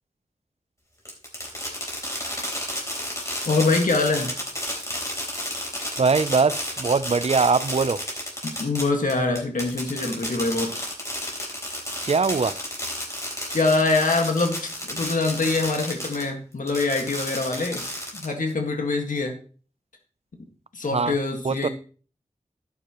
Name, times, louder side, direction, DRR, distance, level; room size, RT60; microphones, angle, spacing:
Fireworks, 1.1-16.3 16.7-18.5, left 1 dB, 25° left, 3.7 m, -31 dB
voice 1, 3.5-4.3 8.4-10.7 13.5-17.8 18.1-19.3 20.7-21.7, left 3 dB, 90° left, 1.8 m, -24 dB
voice 2, 6.0-8.0 12.0-12.6 20.9-21.1 21.4-21.7, right 4 dB, 50° right, 0.5 m, -22 dB
11.5 x 9.3 x 3.0 m
wide cardioid pair, 60°, 13 cm